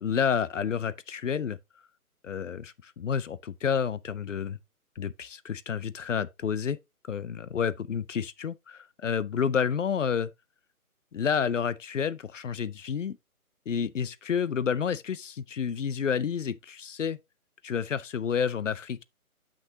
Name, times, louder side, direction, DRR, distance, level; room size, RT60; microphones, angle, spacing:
voice 1, 0.0-1.6 2.2-4.6 5.0-6.8 7.1-10.3 11.1-13.2 13.7-17.2 17.6-19.0, left 7 dB, 55° left, 0.5 m, -30 dB
8.4 x 6.1 x 2.7 m
figure-of-eight pair, 155°, 44 cm